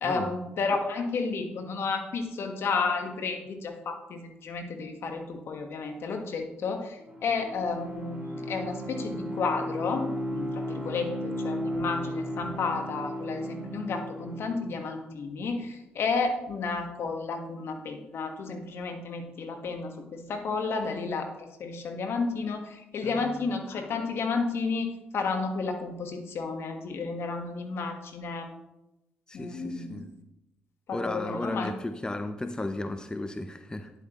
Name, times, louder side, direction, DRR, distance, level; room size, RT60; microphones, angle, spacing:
voice 1, 0.0-8.2 8.5-24.9 25.1-28.5 29.3-30.0 30.9-31.7, left 4 dB, 60° left, 5 dB, 1.4 m, -32 dB
Bowed string instrument, 7.0-14.7, equal, 30° right, 3.3 m, -35 dB
voice 2, 23.0-23.5 29.3-30.1 30.9-33.9, left 2 dB, 15° left, 8 dB, 0.7 m, -35 dB
9.8 x 8.0 x 3.0 m, 0.91 s
hypercardioid pair, 50°, 5 cm